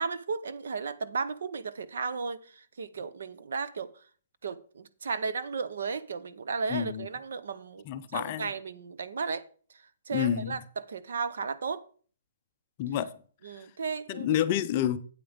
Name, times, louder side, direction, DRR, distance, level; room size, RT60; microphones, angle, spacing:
voice 1, 0.0-4.0 4.4-7.8 8.1-11.8 13.4-14.4, right 5 dB, 70° right, 0.8 m, -35 dB
voice 2, 6.7-7.1 7.9-8.5 10.1-10.6 12.8-13.1 14.1-15.0, left 11 dB, 25° left, 0.4 m, -28 dB
8.6 x 8.6 x 3.5 m
hypercardioid pair, 175°, 0 cm